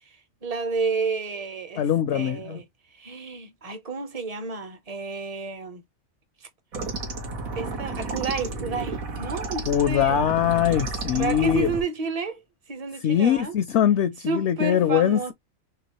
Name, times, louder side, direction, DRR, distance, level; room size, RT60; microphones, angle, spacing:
voice 1, 0.4-1.9 2.1-2.7 2.9-5.8 6.4-6.5 7.5-10.2 11.1-12.4 12.7-13.5 14.3-15.3, right 4 dB, 35° right, 0.7 m, -30 dB
voice 2, 1.8-2.6 9.7-11.7 13.0-15.3, left 10 dB, 65° left, 0.8 m, -22 dB
sound 1, 6.7-11.8, right 3 dB, 90° right, 1.7 m, -32 dB
3.8 x 3.4 x 2.8 m
omnidirectional pair, 1.4 m